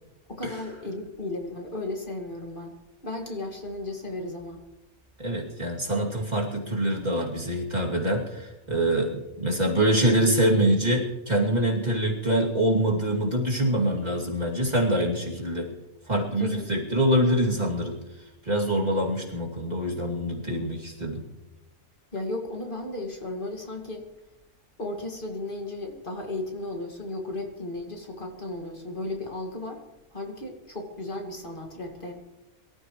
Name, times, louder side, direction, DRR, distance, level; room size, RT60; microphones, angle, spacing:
voice 1, 0.3-2.8 3.0-4.7 16.4-16.7 22.1-24.1 24.8-29.8 30.1-32.1, left 2 dB, 35° left, 1 dB, 2.3 m, -35 dB
voice 2, 5.2-15.7 16.1-18.0 18.5-21.2, right 1 dB, 30° right, -2 dB, 2.7 m, -25 dB
24.5 x 14.0 x 3.1 m, 0.96 s
omnidirectional pair, 1.5 m